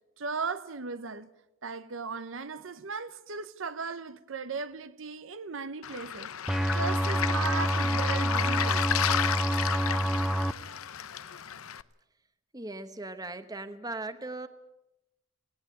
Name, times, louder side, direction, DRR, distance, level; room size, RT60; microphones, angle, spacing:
voice 1, 0.2-1.3 1.6-6.3 6.7-8.9, right 5 dB, 70° right, 0.9 m, -37 dB
Waves surf, 5.8-11.8, left 9 dB, 90° left, 0.7 m, -32 dB
sound 1, 6.5-10.5, right 1 dB, ahead, 0.7 m, -27 dB
voice 2, 12.5-14.5, right 2 dB, 20° right, 1.1 m, -38 dB
18.5 x 18.0 x 9.2 m
head